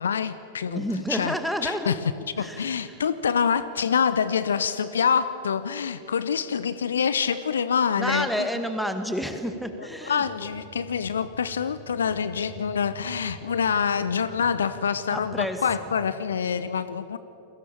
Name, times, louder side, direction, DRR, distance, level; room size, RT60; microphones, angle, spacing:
voice 1, 0.0-0.8 1.1-1.4 1.6-2.0 2.4-8.5 9.8-17.2, left 7 dB, 70° left, 14 dB, 0.9 m, -26 dB
voice 2, 0.7-2.0 2.4-3.0 8.0-10.5 15.1-15.6, equal, ahead, 7 dB, 2.2 m, -30 dB
sound 1, 10.2-16.3, right 7 dB, 35° right, 1.8 m, -47 dB
30.0 x 22.5 x 7.2 m, 2.8 s
figure-of-eight pair, 90°, 0 cm